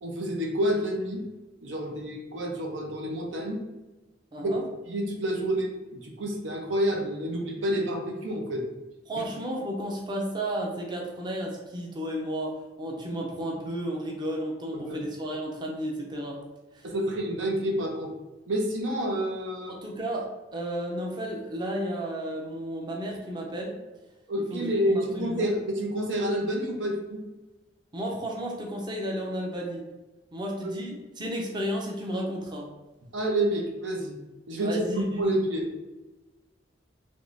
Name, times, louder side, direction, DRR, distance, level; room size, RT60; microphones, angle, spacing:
voice 1, 0.0-1.2 1.6-3.6 4.4-4.6 4.9-8.7 9.1-9.2 14.7-15.0 16.8-18.1 18.5-19.8 24.3-27.2 30.6-30.7 33.1-34.1 34.5-35.7, right 1 dB, 90° right, 1 dB, 0.7 m, -29 dB
voice 2, 4.3-4.6 9.1-16.4 16.7-16.9 19.7-20.3 20.5-23.7 24.5-25.5 27.9-29.8 30.3-32.7 34.6-35.4, right 1 dB, 25° right, -1 dB, 0.5 m, -33 dB
3.5 x 3.1 x 2.5 m, 1.1 s
head